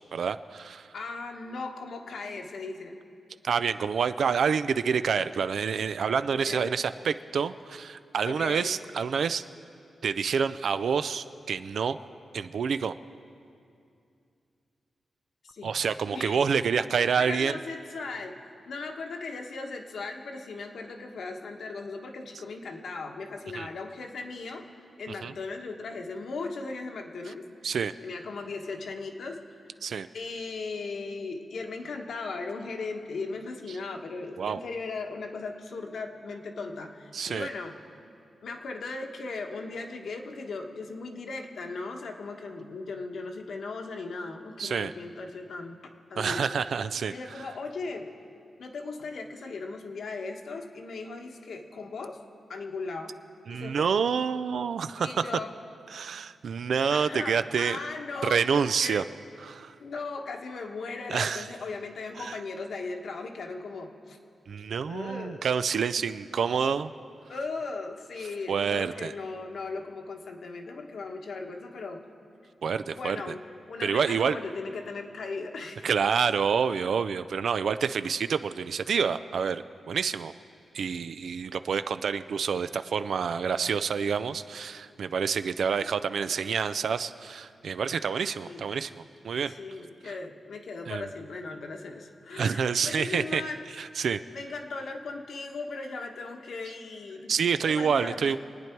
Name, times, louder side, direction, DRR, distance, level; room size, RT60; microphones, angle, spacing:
voice 1, 0.1-0.9 3.4-9.4 10.0-12.0 12.3-12.9 15.6-17.6 23.5-23.7 25.2-25.3 27.6-27.9 29.8-30.1 34.4-34.6 37.1-37.5 44.6-44.9 46.2-47.1 53.5-55.2 55.9-57.8 58.2-59.0 59.4-59.7 61.1-61.5 62.2-62.4 64.5-66.9 68.5-69.1 72.6-73.3 73.8-74.4 75.8-80.3 80.7-89.5 90.0-90.1 90.9-91.0 92.3-93.4 93.8-94.2 97.3-98.4, right 6 dB, 70° right, 12 dB, 0.4 m, -28 dB
voice 2, 0.9-3.0 6.3-6.7 8.2-8.7 15.4-15.7 16.1-16.4 17.2-18.4 18.7-24.7 25.0-27.5 28.0-29.4 30.1-37.8 38.4-45.8 46.1-46.6 47.0-48.1 48.6-52.2 52.5-53.1 53.5-53.9 55.0-55.6 56.9-59.1 59.8-64.2 64.9-65.5 67.3-72.0 72.8-73.4 73.7-75.9 88.5-88.6 89.5-93.6 94.3-97.3 97.7-98.4, left 3 dB, 70° left, 3 dB, 1.3 m, -37 dB
26.0 x 9.4 x 4.6 m, 2.5 s
wide cardioid pair, 115°, 0 cm